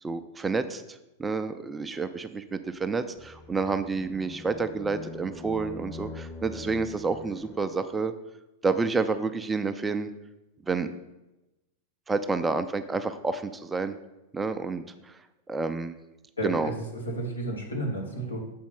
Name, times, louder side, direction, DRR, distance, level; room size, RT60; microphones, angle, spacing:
voice 1, 0.0-8.1 8.6-10.1 10.7-10.9 12.1-14.0 14.3-15.1 15.5-15.9 16.4-16.7, right 4 dB, 15° right, 10 dB, 0.4 m, -29 dB
sound 1, 3.2-7.6, left 3 dB, 25° left, 1.0 m, -43 dB
voice 2, 16.4-18.4, right 1 dB, 80° left, -1 dB, 1.5 m, -32 dB
7.3 x 4.3 x 5.4 m, 0.98 s
figure-of-eight pair, 90°, 0 cm